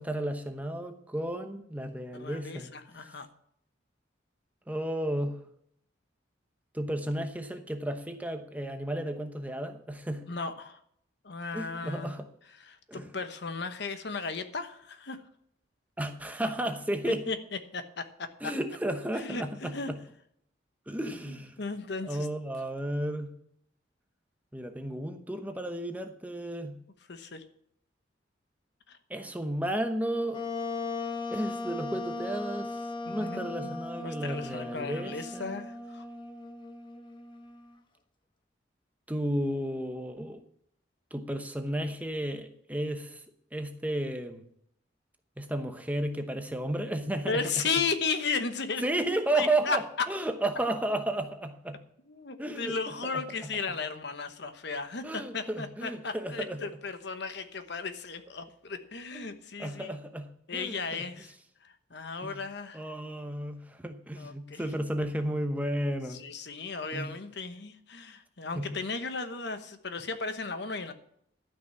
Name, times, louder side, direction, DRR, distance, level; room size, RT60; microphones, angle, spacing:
voice 1, 0.0-2.7 4.7-5.4 6.7-10.3 11.5-12.3 12.9-13.1 16.0-17.3 18.4-20.0 20.9-21.6 22.0-23.3 24.5-26.8 29.1-30.5 31.3-35.6 39.1-40.4 41.1-43.2 43.5-44.4 45.4-47.4 48.8-51.8 52.4-52.8 53.0-53.2 55.0-56.6 59.1-59.3 59.6-61.0 62.2-62.4 62.7-66.2 66.9-67.1 68.5-68.7, right 1 dB, 10° right, 6 dB, 0.9 m, -33 dB
voice 2, 2.1-3.3 10.3-10.8 11.2-12.1 12.6-15.2 17.3-17.4 17.7-18.5 19.1-19.9 21.6-22.3 27.1-27.4 28.9-29.0 33.1-36.1 47.2-48.8 49.3-49.8 52.1-59.9 60.5-61.3 61.6-62.9 64.2-64.7 66.1-70.9, left 4 dB, 65° left, 9 dB, 1.1 m, -35 dB
Wind instrument woodwind instrument, 30.3-37.7, left 3 dB, 25° left, 1.0 m, -38 dB
12.5 x 6.0 x 7.4 m, 0.71 s
head